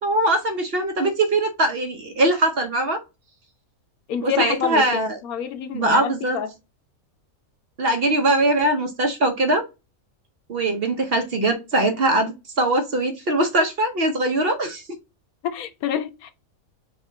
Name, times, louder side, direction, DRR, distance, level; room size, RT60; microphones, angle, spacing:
voice 1, 0.0-3.0 4.2-5.2 5.7-6.4 7.8-9.6 10.5-14.8, right 2 dB, 50° right, 0.9 m, -21 dB
voice 2, 4.1-6.5 15.4-16.3, left 8 dB, 80° left, 1.2 m, -28 dB
5.2 x 2.4 x 3.9 m
omnidirectional pair, 1.5 m